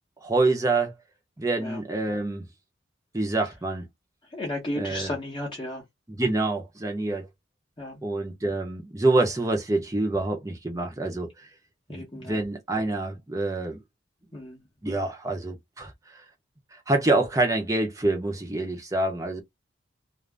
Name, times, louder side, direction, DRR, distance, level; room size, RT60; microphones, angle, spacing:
voice 1, 0.2-0.9 1.4-2.5 3.1-3.9 4.8-5.1 6.1-7.3 8.0-11.5 11.9-13.8 14.8-16.2 16.7-19.4, right 2 dB, 15° right, 0.7 m, -26 dB
voice 2, 4.3-5.8 7.8-8.0 11.9-12.4 14.3-14.6, left 1 dB, 25° left, 0.8 m, -34 dB
2.5 x 2.1 x 3.3 m
head